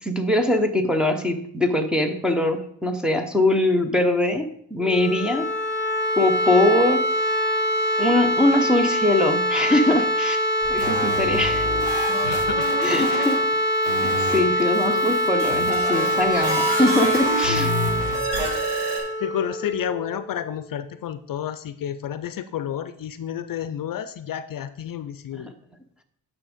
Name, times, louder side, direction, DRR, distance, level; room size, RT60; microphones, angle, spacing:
voice 1, 0.0-5.5 6.2-7.1 8.0-10.4 10.7-11.7 12.8-13.4 14.0-17.7 25.3-25.5, left 1 dB, ahead, 2 dB, 0.8 m, -22 dB
sound 1, 4.8-20.5, equal, 30° left, 2.0 m, -24 dB
sound 2, 10.6-13.4 13.8-19.0, right 1 dB, 90° right, 3.9 m, -29 dB
voice 2, 12.2-13.2 14.8-15.1 19.2-25.5, left 9 dB, 55° left, 12 dB, 0.5 m, -31 dB
9.0 x 6.3 x 5.0 m, 0.66 s
wide cardioid pair, 155°, 40 cm